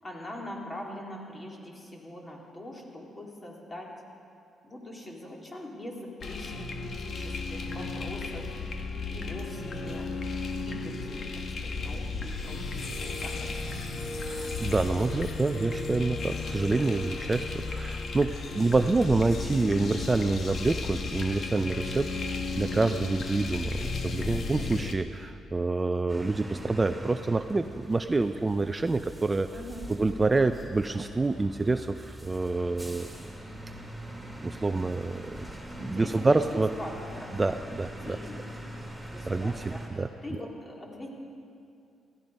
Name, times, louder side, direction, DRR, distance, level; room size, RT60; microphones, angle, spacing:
voice 1, 0.0-3.9 4.6-10.1 10.5-13.6 29.5-30.3 35.8-37.4 37.7-38.5 39.0-41.1, left 1 dB, 25° left, -1 dB, 3.1 m, -43 dB
sound 1, 6.2-25.0, left 3 dB, 55° left, 1.4 m, -34 dB
voice 2, 14.2-29.5 29.9-33.1 34.4-35.5 35.8-36.7 37.3-38.2 39.3-40.1, right 3 dB, 20° right, 9 dB, 0.5 m, -27 dB
sound 2, 26.1-39.9, right 1 dB, ahead, 2.9 m, -43 dB
16.5 x 14.0 x 5.3 m, 2.5 s
cardioid pair, 90°, 0 cm